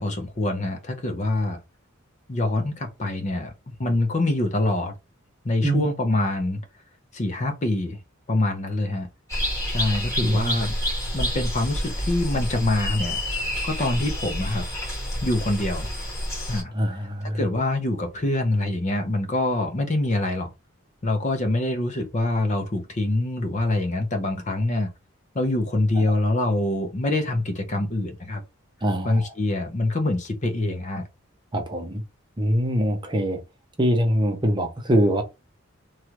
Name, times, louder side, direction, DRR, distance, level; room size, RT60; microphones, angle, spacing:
voice 1, 0.0-1.6 2.3-3.5 3.8-4.9 5.4-6.6 7.1-8.0 8.3-9.1 9.7-10.7 11.1-14.7 15.2-15.9 16.5-16.7 17.2-20.5 21.0-24.9 25.3-28.4 29.0-31.0, left 2 dB, 35° left, 0.6 m, -25 dB
sound 1, 9.3-16.6, equal, 15° left, 1.8 m, -28 dB
voice 2, 10.2-10.6 16.7-17.4 26.0-26.1 28.8-29.3 31.5-32.0 32.4-33.4 33.8-35.2, equal, 20° right, 0.6 m, -23 dB
3.1 x 2.3 x 2.9 m
head